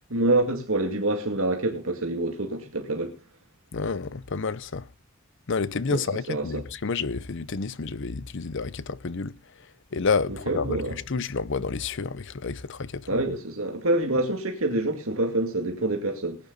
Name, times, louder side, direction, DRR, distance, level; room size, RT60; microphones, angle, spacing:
voice 1, 0.1-3.2 5.9-6.6 10.3-11.0 13.1-16.4, right 2 dB, 70° right, 2.2 m, -26 dB
voice 2, 3.7-4.9 5.5-9.3 9.9-10.8 11.1-13.1, left 4 dB, 60° left, 0.7 m, -29 dB
19.5 x 9.6 x 4.0 m
head